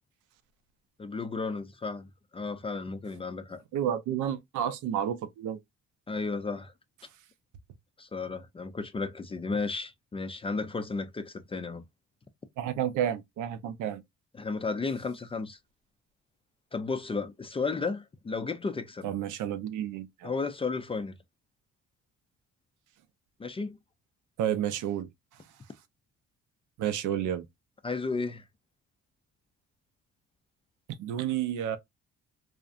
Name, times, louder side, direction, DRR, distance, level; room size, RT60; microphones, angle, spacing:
voice 1, 1.0-2.1 2.3-3.6 6.1-6.7 8.0-11.8 14.3-15.6 16.7-19.1 20.2-21.2 23.4-23.8 27.8-28.4, left 4 dB, 20° left, 0.3 m, -33 dB
voice 2, 3.7-5.6 12.6-14.0 19.0-20.3 24.4-25.1 26.8-27.4 31.0-31.8, right 10 dB, 85° right, 0.5 m, -30 dB
2.6 x 2.1 x 2.3 m
cardioid pair, 90°, 30 cm